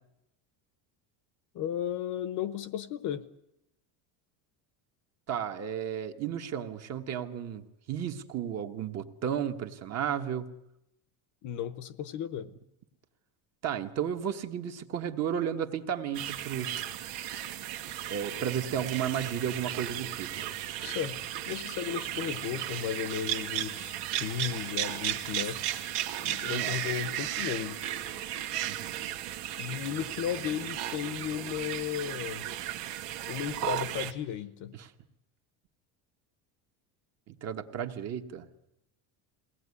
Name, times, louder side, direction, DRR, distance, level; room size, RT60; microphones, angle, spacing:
voice 1, 1.5-3.2 11.4-12.5 20.8-21.2 21.5-25.9 26.2-27.8 29.6-32.4 33.3-34.8, left 10 dB, 40° left, 15 dB, 1.0 m, -35 dB
voice 2, 5.3-10.5 13.6-16.9 18.1-20.5 26.5-26.8 28.6-29.0 34.7-34.9 37.3-38.5, right 9 dB, 35° right, 6 dB, 1.4 m, -33 dB
sound 1, 16.1-34.1, right 12 dB, 90° right, 2.0 m, -35 dB
22.0 x 18.0 x 9.7 m, 0.85 s
cardioid pair, 160°, 45 cm